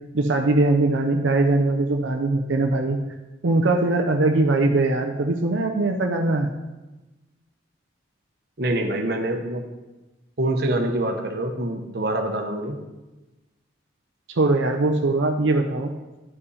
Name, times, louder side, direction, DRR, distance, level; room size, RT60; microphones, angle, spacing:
voice 1, 0.1-3.0 3.4-6.5 14.4-15.9, right 2 dB, 80° right, 3 dB, 0.6 m, -21 dB
voice 2, 8.6-9.6 10.4-12.8, right 1 dB, 55° right, 4 dB, 0.9 m, -25 dB
11.0 x 5.6 x 4.1 m, 1.1 s
head